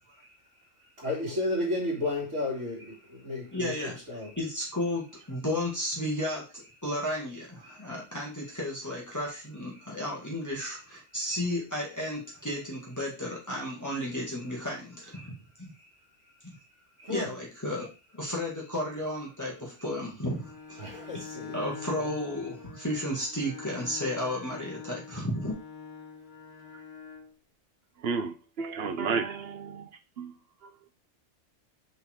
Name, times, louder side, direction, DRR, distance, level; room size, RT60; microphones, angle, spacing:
voice 1, 1.0-3.7 4.1-4.3 7.6-7.8 17.0-17.3 20.8-21.5, left 2 dB, 85° right, 2.5 m, -32 dB
voice 2, 3.5-15.3 15.6-15.7 16.4-16.5 17.1-17.9 18.1-20.8 21.1-21.2 21.5-25.6, left 1 dB, 15° left, 1.9 m, -33 dB
Bowed string instrument, 20.3-27.3, left 6 dB, 60° left, 2.9 m, -44 dB
voice 3, 28.0-29.9 30.2-30.3, right 5 dB, 60° right, 1.0 m, -31 dB
5.3 x 4.1 x 4.4 m
omnidirectional pair, 1.2 m